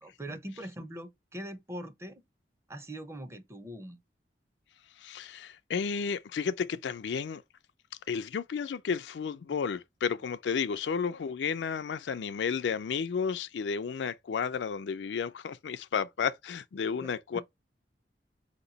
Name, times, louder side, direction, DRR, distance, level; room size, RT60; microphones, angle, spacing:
voice 1, 0.0-2.2 2.7-4.0 17.0-17.4, right 1 dB, 15° right, 0.6 m, -42 dB
voice 2, 5.0-7.4 8.1-17.4, left 6 dB, 80° left, 0.4 m, -32 dB
4.3 x 2.9 x 3.9 m
head